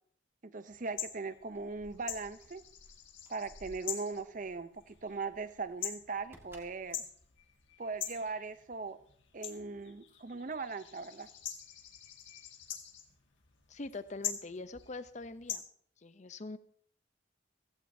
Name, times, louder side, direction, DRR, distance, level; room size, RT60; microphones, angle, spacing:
voice 1, 0.4-2.6 3.3-7.0 7.8-9.0 9.3-11.3, right 4 dB, 45° right, 13 dB, 0.6 m, -39 dB
sound 1, 0.7-15.6, left 9 dB, 85° left, 1.7 m, -45 dB
Keys jangling, 1.4-8.3, equal, 15° right, 1.7 m, -60 dB
voice 2, 13.7-15.6 16.0-16.6, left 3 dB, 40° left, 13 dB, 0.6 m, -43 dB
15.5 x 15.5 x 2.7 m, 0.62 s
head